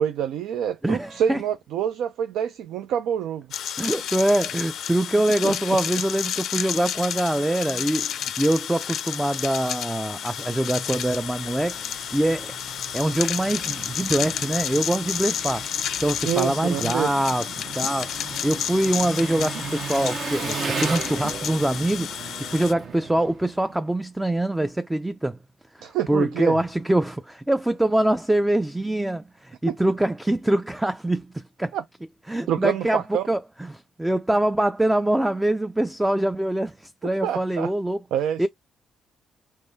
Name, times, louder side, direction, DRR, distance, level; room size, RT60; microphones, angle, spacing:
voice 1, 0.0-3.5 5.4-5.5 16.2-17.1 25.8-26.6 29.7-29.8 31.7-31.8 32.5-33.3 37.2-37.7 38.1-38.5, right 9 dB, 85° right, 0.4 m, -26 dB
voice 2, 0.8-1.4 3.8-12.5 12.9-17.5 17.7-25.4 25.7-31.7 32.3-38.0 38.4-38.5, right 1 dB, 10° right, 0.3 m, -24 dB
sound 1, 3.5-22.7, left 10 dB, 75° left, 0.4 m, -31 dB
Engine, 10.4-23.9, right 5 dB, 55° right, 0.8 m, -36 dB
3.6 x 3.0 x 2.6 m
cardioid pair, 90°, 0 cm